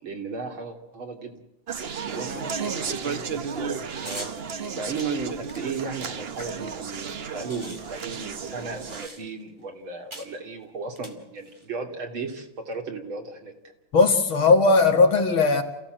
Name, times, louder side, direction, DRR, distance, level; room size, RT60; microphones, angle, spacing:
voice 1, 0.0-1.4 2.1-4.3 4.7-13.6, right 4 dB, 75° right, 3.6 m, -35 dB
Conversation, 1.7-9.1, right 6 dB, 45° right, 0.8 m, -33 dB
sound 1, 4.0-4.4 5.0-6.8 7.0-7.1 7.3-9.5 10.1-10.4 10.9-11.7, right 1 dB, 15° right, 2.3 m, -43 dB
voice 2, 13.9-15.6, left 3 dB, 75° left, 2.8 m, -18 dB
28.5 x 16.0 x 8.0 m
omnidirectional pair, 2.2 m